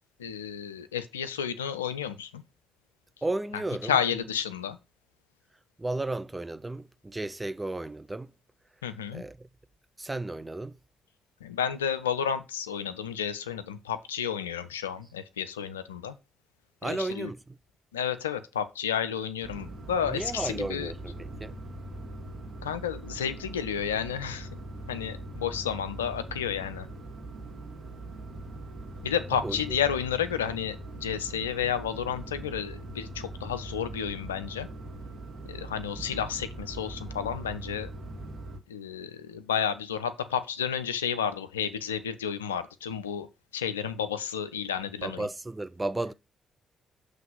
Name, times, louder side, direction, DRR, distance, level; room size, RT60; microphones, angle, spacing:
voice 1, 0.2-2.4 3.9-4.8 8.8-9.2 11.4-16.2 16.8-17.3 17.9-20.9 22.6-24.6 24.9-26.9 29.0-34.7 35.5-37.9 38.7-43.3 43.5-45.3, left 8 dB, 85° left, 0.4 m, -31 dB
voice 2, 3.2-4.3 5.8-8.3 9.1-9.5 10.0-10.8 16.8-17.6 20.0-21.6 29.3-29.8 45.0-46.1, right 2 dB, 20° right, 0.5 m, -34 dB
sound 1, 19.4-38.6, right 2 dB, 40° right, 1.6 m, -41 dB
7.4 x 3.2 x 5.5 m
figure-of-eight pair, 40°, 0 cm